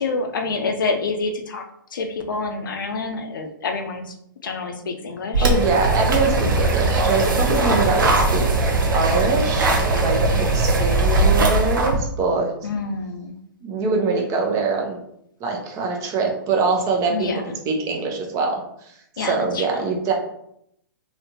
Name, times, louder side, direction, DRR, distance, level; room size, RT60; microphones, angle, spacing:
voice 1, 0.0-1.6 1.9-4.1 4.4-5.5 7.6-8.3 12.6-13.4 17.1-17.5 19.2-19.9, left 4 dB, 70° left, 5 dB, 0.5 m, -28 dB
sound 1, 5.3-12.0, right 2 dB, 70° right, 0.8 m, -19 dB
voice 2, 5.4-8.4 8.9-10.2 10.5-12.5 13.6-15.0 15.4-17.3 17.7-19.0 19.2-20.1, right 4 dB, 30° right, 1 dB, 0.7 m, -23 dB
3.3 x 2.7 x 2.8 m, 0.74 s
hypercardioid pair, 120°, 11 cm